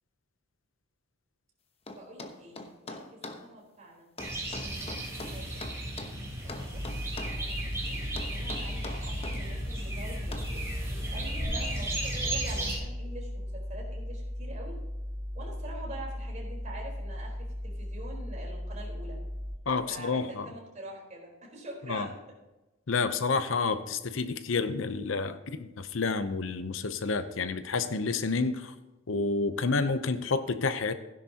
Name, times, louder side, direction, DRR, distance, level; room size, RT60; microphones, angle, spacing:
sound 1, 1.9-3.4 4.2-6.2 6.5-7.4 8.2-9.4 10.3-10.5, left 2 dB, 30° left, 1.0 m, -42 dB
voice 1, 1.9-4.1 4.6-5.7 6.4-6.9 7.2-14.8 15.3-19.2 19.9-22.4, right 1 dB, 40° right, -2 dB, 4.0 m, -45 dB
sound 2, 4.2-12.8, right 1 dB, 15° right, 3.8 m, -35 dB
sound 3, 6.7-19.6, left 1 dB, 85° right, 2.2 m, -37 dB
voice 2, 19.7-20.5 21.9-22.1 22.9-28.7 29.1-30.9, left 4 dB, 70° left, 11 dB, 0.7 m, -29 dB
16.0 x 10.5 x 2.9 m, 1.0 s
head